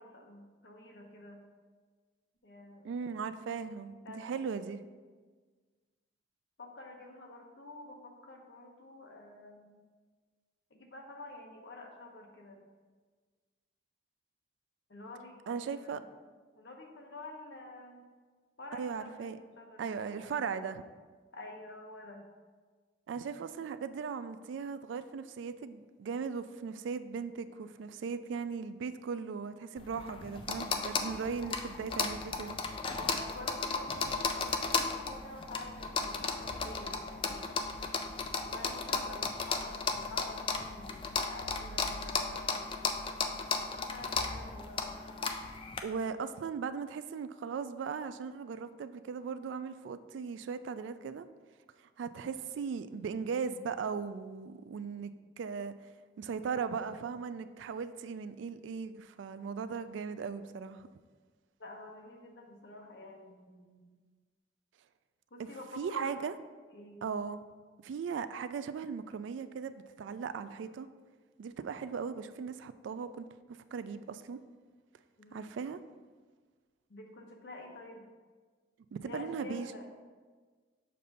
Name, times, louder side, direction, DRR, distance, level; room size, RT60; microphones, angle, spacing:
voice 1, 0.0-1.4 2.4-2.9 4.0-4.4 6.6-9.8 10.7-12.7 14.9-16.0 16.6-18.1 18.6-20.6 21.3-22.3 30.8-31.2 33.0-37.6 38.4-42.6 43.7-45.0 61.6-64.0 65.3-66.2 66.7-67.0 75.2-75.6 76.9-78.0 78.9-79.9, left 2 dB, 65° left, 1 dB, 0.9 m, -49 dB
voice 2, 2.8-4.8 15.5-16.0 18.7-19.4 19.8-20.8 23.1-32.6 45.8-51.3 52.0-55.1 55.4-55.7 56.2-60.9 65.4-65.5 65.8-66.3 67.0-67.4 67.8-70.9 71.4-73.3 73.7-74.4 75.3-75.8 78.9-79.7, right 6 dB, 75° right, 12 dB, 0.3 m, -38 dB
sound 1, 29.8-45.8, left 4 dB, 25° left, 0.3 m, -35 dB
6.7 x 2.6 x 5.4 m, 1.5 s
head